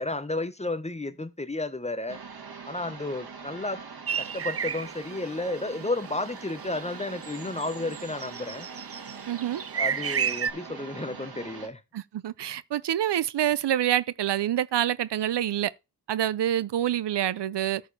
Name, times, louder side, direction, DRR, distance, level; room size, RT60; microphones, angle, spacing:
voice 1, 0.0-2.2 2.7-3.8 4.2-8.7 9.8-11.8, left 2 dB, 15° left, 0.7 m, -32 dB
sound 1, 2.1-11.7, right 5 dB, 60° right, 1.8 m, -43 dB
sound 2, 4.1-10.5, right 7 dB, 35° right, 0.4 m, -33 dB
voice 2, 9.3-9.6 11.9-15.7 16.1-17.8, right 11 dB, 80° right, 0.6 m, -26 dB
14.0 x 4.7 x 3.3 m
wide cardioid pair, 140°, 41 cm